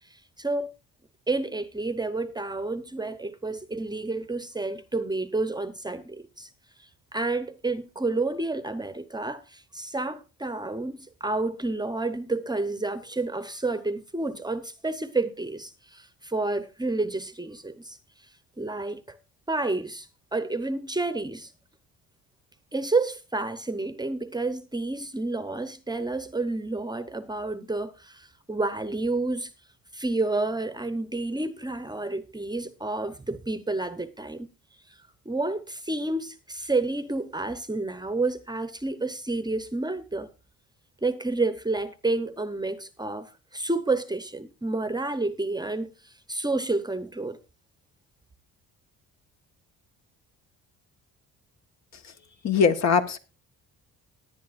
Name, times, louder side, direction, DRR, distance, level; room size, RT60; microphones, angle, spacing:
voice 1, 0.1-0.7 1.3-6.5 6.8-18.0 18.6-19.2 19.5-21.5 22.7-29.5 29.9-34.5 35.2-40.3 41.0-47.4, right 2 dB, 15° right, 0.9 m, -30 dB
voice 2, 52.4-53.2, left 6 dB, 55° left, 1.5 m, -21 dB
18.5 x 9.9 x 2.6 m
cardioid pair, 105°, 33 cm